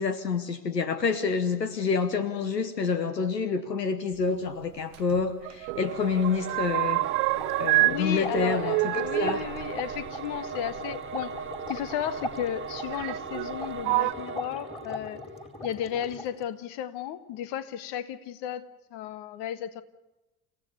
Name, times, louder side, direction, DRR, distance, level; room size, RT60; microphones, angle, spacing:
voice 1, 0.0-7.0 7.6-9.4, left 5 dB, 90° left, 13 dB, 1.2 m, -28 dB
sound 1, 4.9-5.9 6.1-8.0 8.3-10.8 11.8-11.9 12.9-13.5 13.8-14.1, right 22 dB, 60° right, 0.7 m, -27 dB
Singing / Musical instrument, 5.7-15.8, right 6 dB, 25° right, 1.7 m, -39 dB
sound 2, 7.0-16.4, left 1 dB, 10° left, 4.3 m, -40 dB
voice 2, 7.8-15.2 15.6-19.8, left 10 dB, 55° left, 14 dB, 1.6 m, -34 dB
29.0 x 16.5 x 6.8 m, 1.0 s
figure-of-eight pair, 65°, 48 cm